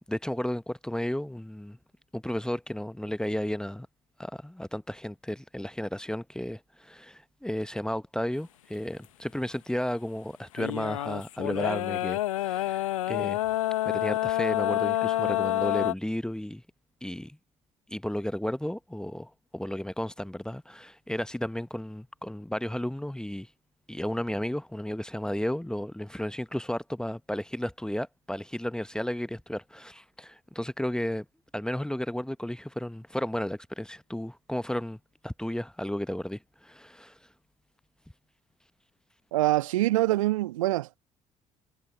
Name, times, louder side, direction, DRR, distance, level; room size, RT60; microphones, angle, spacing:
voice 1, 0.0-1.8 2.1-3.9 4.2-13.4 13.8-16.6 17.0-17.4 17.9-23.5 23.9-31.2 31.5-35.0 35.2-37.2, left 1 dB, 5° left, 1.1 m, -33 dB
sound 1, 10.6-15.9, left 14 dB, 75° left, 1.4 m, -28 dB
voice 2, 39.3-41.0, right 16 dB, 75° right, 1.5 m, -25 dB
figure-of-eight pair, 50°, 17 cm